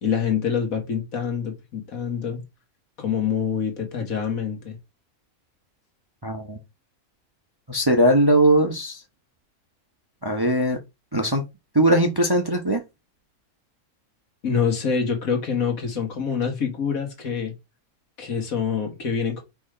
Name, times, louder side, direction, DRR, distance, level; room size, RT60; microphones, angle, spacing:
voice 1, 0.0-2.4 3.0-4.8 14.4-17.5 18.2-19.4, left 6 dB, 70° left, 2.0 m, -26 dB
voice 2, 6.2-6.6 7.7-9.0 10.2-10.8 11.1-11.4 11.7-12.8, right 1 dB, 20° right, 0.8 m, -20 dB
4.7 x 4.2 x 5.0 m
omnidirectional pair, 1.5 m